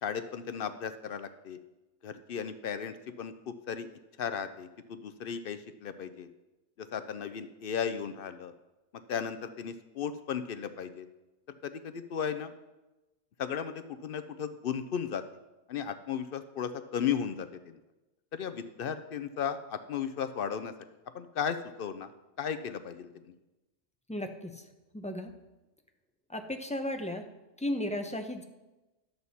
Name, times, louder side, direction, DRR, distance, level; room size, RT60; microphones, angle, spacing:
voice 1, 0.0-1.6 2.0-3.9 4.2-6.3 6.8-8.5 9.1-11.1 11.6-12.5 13.4-15.2 15.7-17.8 18.3-20.7 21.1-22.1 22.4-23.3, left 7 dB, 60° left, 11 dB, 0.7 m, -35 dB
voice 2, 24.1-24.6 24.9-25.3 26.3-27.2 27.6-28.4, left 1 dB, 10° left, 5 dB, 0.5 m, -34 dB
11.0 x 8.0 x 4.1 m, 1.1 s
omnidirectional pair, 1.2 m